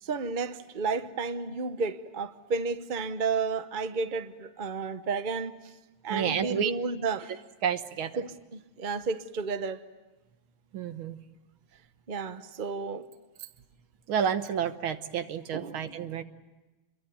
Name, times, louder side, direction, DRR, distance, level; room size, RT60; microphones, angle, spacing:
voice 1, 0.0-5.7 6.0-7.4 8.2-9.8 12.1-13.1 13.4-13.5 15.5-15.9, right 4 dB, 50° right, 0.5 m, -32 dB
voice 2, 6.1-6.7 7.6-8.2 10.7-11.2 14.1-16.2, right 8 dB, 70° right, 2.0 m, -30 dB
28.0 x 23.0 x 9.1 m
omnidirectional pair, 2.4 m